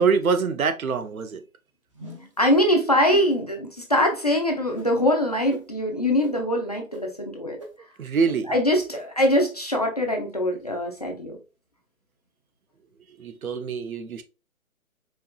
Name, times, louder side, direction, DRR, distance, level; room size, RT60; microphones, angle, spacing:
voice 1, 0.0-1.4 8.0-8.5 13.2-14.2, right 5 dB, 75° right, 0.7 m, -24 dB
sound 1, 1.9-2.4 3.1-3.3 4.0-4.1 4.8-4.9 5.5-5.6 6.2-6.3 6.9-7.0 7.6-7.7 8.3-8.4 8.9-9.0, right 1 dB, 25° right, 0.5 m, -39 dB
voice 2, 2.4-7.6 8.5-11.4, left 1 dB, 30° left, 0.4 m, -23 dB
4.4 x 2.9 x 2.2 m
figure-of-eight pair, 145°, 42 cm